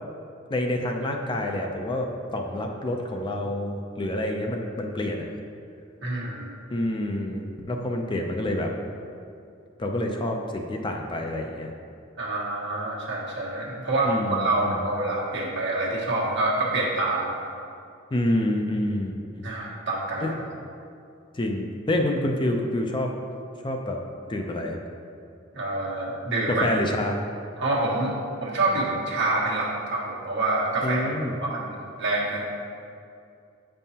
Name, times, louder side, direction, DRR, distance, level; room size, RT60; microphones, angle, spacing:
voice 1, 0.5-5.3 6.7-7.4 7.7-8.7 9.8-11.7 14.0-14.9 18.1-19.5 20.2-20.3 21.3-23.1 23.6-24.0 24.3-24.8 26.5-27.2 30.8-31.3, left 1 dB, 25° left, 2 dB, 0.4 m, -27 dB
voice 2, 6.0-6.5 12.2-17.4 19.4-20.4 25.5-26.6 27.6-28.1 28.4-31.0 31.4-32.5, right 2 dB, 60° right, -4 dB, 1.3 m, -27 dB
8.1 x 5.4 x 2.8 m, 2.5 s
head